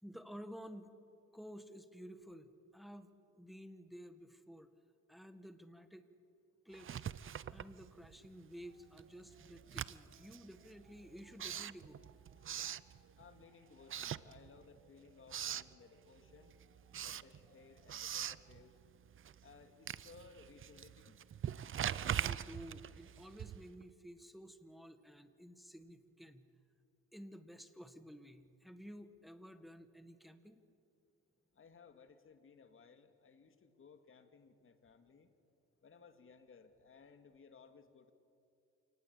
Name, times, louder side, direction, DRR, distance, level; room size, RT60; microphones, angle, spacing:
voice 1, 0.0-0.9 1.3-4.7 5.1-6.1 6.7-7.0 7.5-12.0 22.0-26.5 27.1-30.6, equal, ahead, 9 dB, 1.8 m, -53 dB
Writing, 6.7-8.3 8.6-13.4 13.8-14.8 15.1-15.7 16.2-23.8, right 9 dB, 45° right, 0.6 m, -43 dB
sound 1, 8.6-18.5, right 3 dB, 60° right, 7.9 m, -71 dB
voice 2, 13.2-16.5 17.0-18.8 19.4-21.2 31.5-35.3 35.8-38.1, left 5 dB, 45° left, 8 dB, 2.3 m, -61 dB
28.0 x 19.0 x 8.4 m, 2.6 s
cardioid pair, 90°, 30 cm